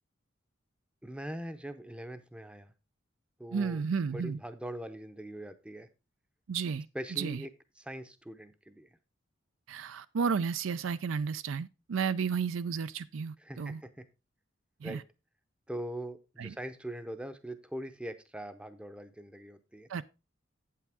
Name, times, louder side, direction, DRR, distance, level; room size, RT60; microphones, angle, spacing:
voice 1, 1.0-2.7 3.4-3.8 4.1-5.9 6.9-7.5 7.8-9.0 13.4-14.0 14.8-15.0 15.7-19.9, right 1 dB, 5° right, 0.6 m, -42 dB
voice 2, 3.5-4.4 6.5-6.9 7.1-7.4 9.7-13.8 14.8-15.0 16.4-16.6 19.9-20.0, right 6 dB, 75° right, 0.4 m, -32 dB
8.5 x 8.3 x 3.5 m
head